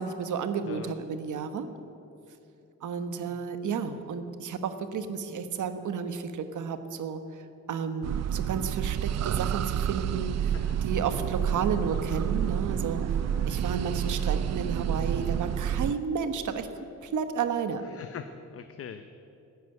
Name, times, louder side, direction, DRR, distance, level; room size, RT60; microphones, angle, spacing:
voice 1, 0.0-1.7 2.8-7.2 7.7-10.6 10.8-13.0 13.5-16.7 17.0-17.8, right 6 dB, 80° right, 10 dB, 1.2 m, -32 dB
sound 1, 8.0-15.9, right 9 dB, 60° right, 0.4 m, -29 dB
voice 2, 13.2-13.6 17.9-19.0, left 8 dB, 50° left, 9 dB, 0.6 m, -43 dB
14.5 x 9.5 x 9.7 m, 2.7 s
wide cardioid pair, 150°, 30 cm